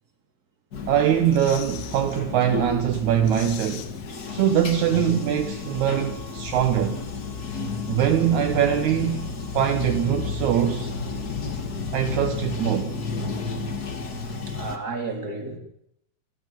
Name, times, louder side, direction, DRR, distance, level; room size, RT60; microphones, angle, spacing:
Bathtub (filling or washing), 0.7-14.8, left 4 dB, 55° left, 1.0 m, -32 dB
voice 1, 0.9-3.9 4.3-7.0 7.9-10.9 11.9-13.0, right 10 dB, 65° right, 1.9 m, -22 dB
sound 1, 1.0-2.3 2.6-2.7 3.0-4.8 5.1-5.2, left 11 dB, 70° left, 3.4 m, -42 dB
voice 2, 14.2-15.6, right 3 dB, 25° right, 3.7 m, -33 dB
27.5 x 13.5 x 9.2 m
omnidirectional pair, 4.9 m